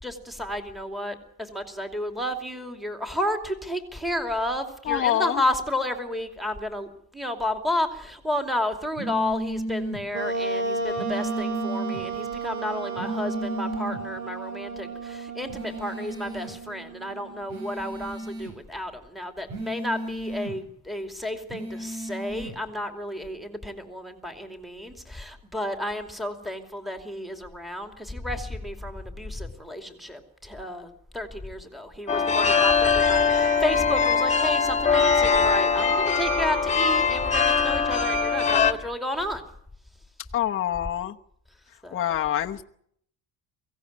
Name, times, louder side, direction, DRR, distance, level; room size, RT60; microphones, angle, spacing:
voice 1, 0.0-6.9 7.1-39.4 41.8-42.0, left 1 dB, ahead, 5 dB, 2.7 m, -32 dB
voice 2, 4.8-5.4 40.3-41.1 41.9-42.6, left 11 dB, 35° left, 2 dB, 1.0 m, -25 dB
sound 1, 9.0-10.0 11.0-12.0 13.0-14.0 15.5-16.5 17.5-18.5 19.5-20.5 21.5-22.5, right 1 dB, 85° right, 7.8 m, -33 dB
Wind instrument woodwind instrument, 10.1-17.6, right 3 dB, 50° right, 6.2 m, -33 dB
sound 2, 32.1-38.7, left 5 dB, 20° left, 1.9 m, -21 dB
23.5 x 16.5 x 9.5 m, 0.70 s
cardioid pair, 135°, 36 cm